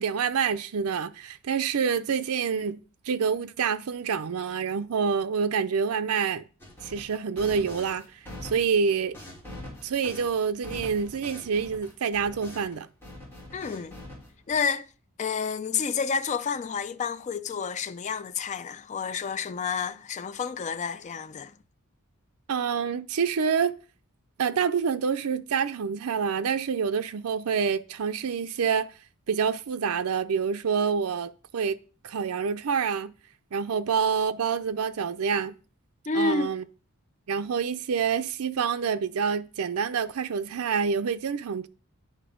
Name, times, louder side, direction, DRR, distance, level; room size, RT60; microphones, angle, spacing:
voice 1, 0.0-2.8 3.1-6.4 6.8-8.0 8.4-9.1 9.8-12.9 22.5-23.7 24.4-28.9 29.3-31.8 32.0-33.1 33.5-35.5 36.1-36.6 37.3-41.7, right 6 dB, 75° right, 0.5 m, -27 dB
sound 1, 6.6-12.8 13.0-14.5, left 1 dB, 10° left, 3.6 m, -43 dB
voice 2, 13.5-13.9 14.5-14.8 15.2-21.5 36.1-36.5, left 5 dB, 30° left, 0.3 m, -29 dB
8.9 x 5.1 x 5.0 m
head